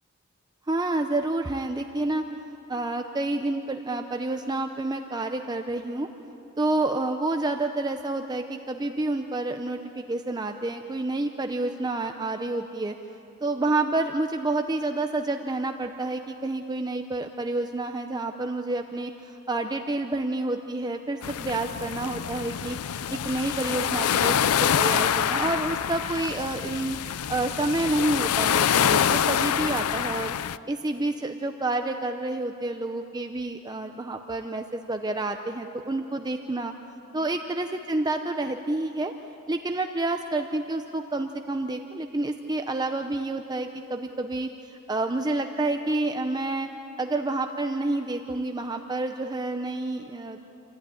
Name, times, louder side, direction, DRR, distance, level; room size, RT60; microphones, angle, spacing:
voice 1, 0.7-2.2 2.7-6.1 6.6-12.9 13.4-27.0 27.3-30.3 30.7-36.7 37.1-39.1 39.5-46.7 47.0-50.4, right 2 dB, 20° right, 5 dB, 0.6 m, -29 dB
sound 1, 21.2-30.6, left 9 dB, 85° left, 0.5 m, -26 dB
27.5 x 14.5 x 9.8 m, 2.9 s
head